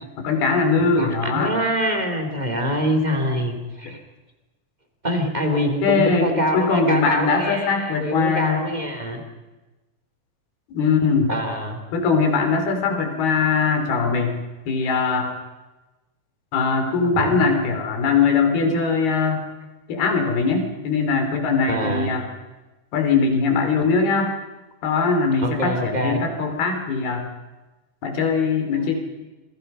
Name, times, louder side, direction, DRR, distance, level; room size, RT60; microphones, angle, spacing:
voice 1, 0.2-1.5 5.5-6.3 6.5-8.7 10.7-11.3 11.9-14.4 14.7-15.3 16.5-19.5 19.9-22.3 22.9-24.4 24.8-27.3 28.0-29.0, left 4 dB, 80° left, 5 dB, 5.2 m, -21 dB
voice 2, 0.8-4.0 5.0-9.2 11.3-11.8 17.0-17.4 21.7-22.1 25.4-26.2, equal, 10° right, 3 dB, 2.6 m, -25 dB
27.5 x 22.5 x 5.6 m, 1.1 s
omnidirectional pair, 4.5 m